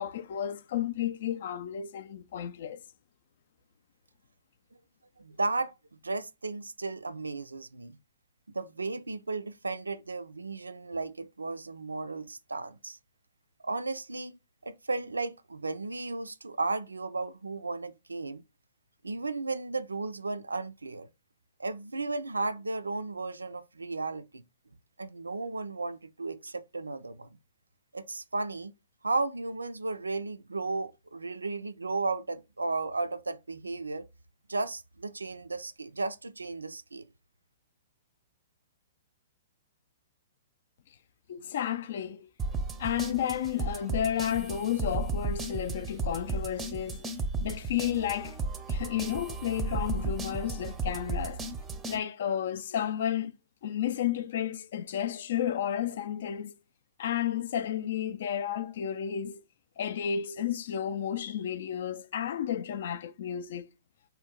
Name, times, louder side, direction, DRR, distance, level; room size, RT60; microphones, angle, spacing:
voice 1, 0.0-2.8 41.3-42.3 42.8-47.1 47.4-48.4 48.7-51.4 51.9-53.3 53.6-56.5 57.0-59.4 59.8-63.7, left 10 dB, 60° left, 0.3 m, -32 dB
voice 2, 5.2-5.7 6.0-8.0 8.5-13.0 13.6-18.4 19.0-21.1 21.6-24.4 25.0-27.3 27.9-28.7 29.0-34.1 34.5-37.1, right 3 dB, 85° right, 0.3 m, -34 dB
sound 1, 42.4-52.0, right 3 dB, 15° right, 0.5 m, -34 dB
2.8 x 2.2 x 3.6 m
figure-of-eight pair, 115°, 0 cm